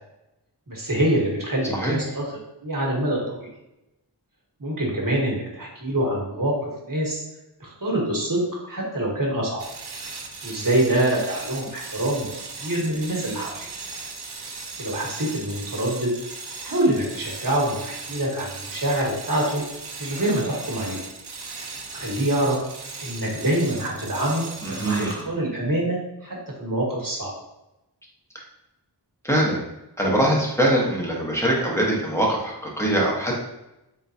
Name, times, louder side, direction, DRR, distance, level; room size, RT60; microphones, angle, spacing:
voice 1, 0.7-2.2 2.6-3.5 4.6-7.2 7.6-8.4 8.7-9.6 10.4-12.3 12.6-13.7 14.8-16.1 16.6-19.6 20.0-21.0 21.9-22.6 23.0-27.3, right 1 dB, 50° right, -3 dB, 1.4 m, -25 dB
sound 1, 9.6-25.3, right 4 dB, 65° right, 0.7 m, -37 dB
voice 2, 24.6-25.3 29.2-29.6 30.0-33.4, right 1 dB, 5° left, -3 dB, 1.1 m, -23 dB
4.0 x 3.7 x 2.7 m, 0.92 s
wide cardioid pair, 45°, 42 cm